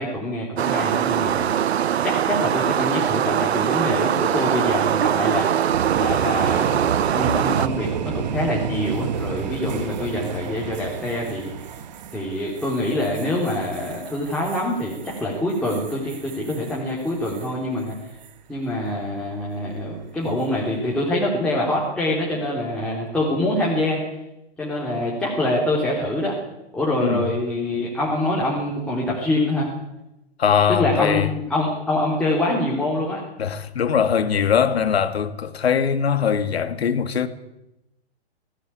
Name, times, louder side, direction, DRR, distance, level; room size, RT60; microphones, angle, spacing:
voice 1, 0.0-1.5 2.0-5.7 5.9-11.5 12.1-17.9 18.5-24.0 24.6-26.4 26.7-29.7 30.7-33.2, left 1 dB, 5° left, 3.5 m, -25 dB
sound 1, 0.6-7.7, right 10 dB, 75° right, 0.7 m, -22 dB
sound 2, 5.7-17.5 17.9-18.3 20.2-20.6, right 7 dB, 40° right, 1.7 m, -32 dB
voice 2, 30.4-31.3 33.4-37.3, left 7 dB, 65° left, 2.3 m, -21 dB
18.0 x 16.5 x 9.8 m
hypercardioid pair, 155°, 33 cm